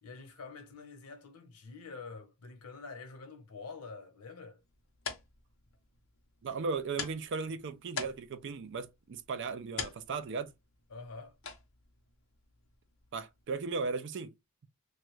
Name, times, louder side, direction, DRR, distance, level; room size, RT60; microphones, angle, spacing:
voice 1, 0.0-4.6 10.9-11.4, left 4 dB, 90° left, 0.8 m, -47 dB
sound 1, 4.6-13.9, left 6 dB, 60° left, 0.7 m, -46 dB
voice 2, 6.4-10.5 13.1-14.3, right 4 dB, 55° right, 0.4 m, -36 dB
3.0 x 2.3 x 3.1 m
head